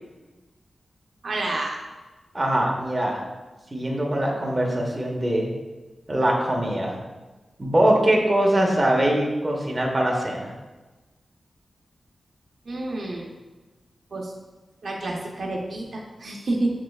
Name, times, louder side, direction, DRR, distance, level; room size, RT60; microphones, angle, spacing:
voice 1, 1.2-1.8 12.7-13.3 14.1-14.3 14.8-16.7, right 2 dB, 60° right, -1 dB, 0.6 m, -29 dB
voice 2, 2.3-3.2 3.7-5.5 6.1-7.0 7.6-10.5, right 1 dB, 20° right, -2 dB, 0.7 m, -22 dB
6.5 x 3.2 x 2.3 m, 1.2 s
wide cardioid pair, 150°, 0 cm